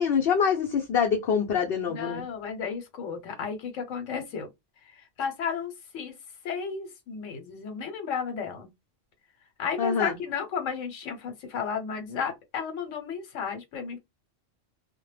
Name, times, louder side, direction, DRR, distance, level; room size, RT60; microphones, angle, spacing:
voice 1, 0.0-2.2 9.8-10.2, left 7 dB, 60° left, 0.7 m, -25 dB
voice 2, 1.9-4.5 5.2-6.1 6.4-8.7 9.6-14.0, left 6 dB, 80° left, 1.0 m, -33 dB
2.1 x 2.1 x 3.1 m
omnidirectional pair, 1.3 m